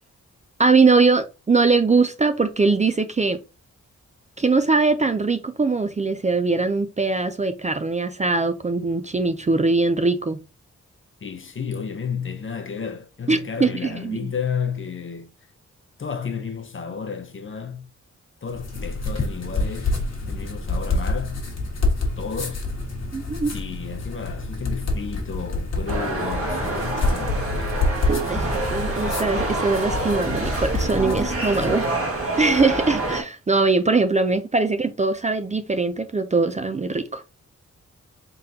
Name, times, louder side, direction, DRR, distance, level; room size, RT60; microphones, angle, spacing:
voice 1, 0.6-3.4 4.4-10.4 13.3-14.3 23.1-23.5 28.3-31.9 32.4-37.2, right 3 dB, 25° right, 0.4 m, -21 dB
voice 2, 11.2-15.3 16.0-17.9 18.4-19.9 20.3-21.4 22.2-22.6 23.5-27.7 31.1-31.3 31.7-32.0, left 6 dB, 45° left, 0.7 m, -32 dB
sound 1, 18.5-31.9, left 2 dB, 60° left, 1.5 m, -27 dB
sound 2, 25.9-33.2, right 2 dB, 50° right, 1.4 m, -27 dB
3.9 x 3.7 x 2.7 m
wide cardioid pair, 80°, 29 cm